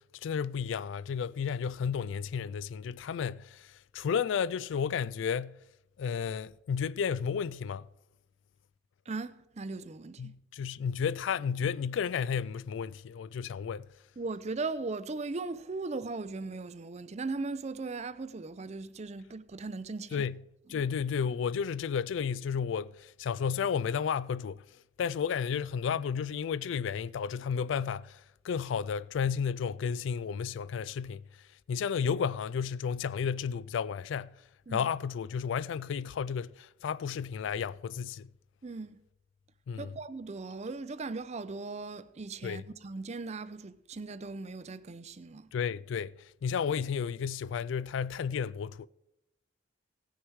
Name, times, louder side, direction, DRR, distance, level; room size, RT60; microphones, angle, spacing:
voice 1, 0.0-5.6 6.0-7.9 10.2-13.9 20.1-20.4 20.7-24.6 25.0-31.2 31.7-34.3 34.7-38.3 39.7-39.9 42.4-42.6 45.5-48.9, left 7 dB, 70° left, 0.3 m, -32 dB
voice 2, 9.1-10.3 14.2-20.3 20.7-20.8 34.7-34.9 38.6-39.0 39.8-45.5, right 3 dB, 35° right, 0.5 m, -38 dB
17.5 x 6.5 x 4.6 m
head